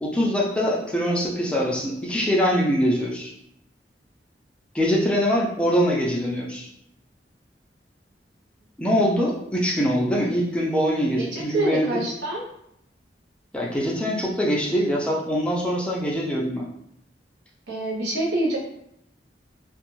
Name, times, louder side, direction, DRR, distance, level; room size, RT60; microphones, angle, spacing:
voice 1, 0.0-3.3 4.7-6.7 8.8-12.0 13.5-16.7, equal, 5° left, -3 dB, 0.4 m, -23 dB
voice 2, 11.2-12.4 17.7-18.6, right 2 dB, 75° right, -3 dB, 0.8 m, -26 dB
2.4 x 2.2 x 3.0 m, 0.76 s
head